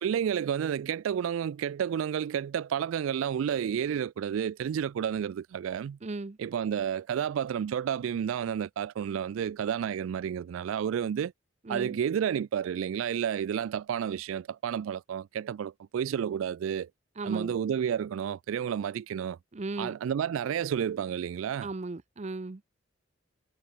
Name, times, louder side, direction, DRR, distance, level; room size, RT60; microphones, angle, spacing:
voice 1, 0.0-6.0 6.4-11.3 11.7-16.9 17.2-19.4 19.8-21.7, right 8 dB, 90° right, 0.3 m, -31 dB
voice 2, 6.0-6.4 11.6-12.0 17.2-17.6 19.5-19.9 21.6-22.6, right 3 dB, 35° right, 0.5 m, -36 dB
head